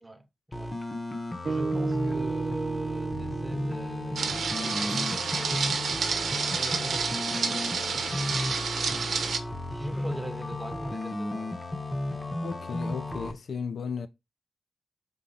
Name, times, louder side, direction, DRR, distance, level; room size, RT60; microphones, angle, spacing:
voice 1, 0.0-0.7 1.4-8.2 8.8-9.2 9.7-11.6, right 1 dB, 15° right, 1.0 m, -41 dB
sound 1, 0.5-13.3, left 1 dB, 25° left, 0.9 m, -34 dB
sound 2, 1.4-5.8, right 4 dB, 45° right, 0.6 m, -34 dB
sound 3, 4.2-9.4, right 5 dB, 85° right, 0.9 m, -29 dB
voice 2, 12.4-14.1, left 6 dB, 70° left, 0.5 m, -35 dB
4.9 x 3.9 x 5.6 m
wide cardioid pair, 115°, 0 cm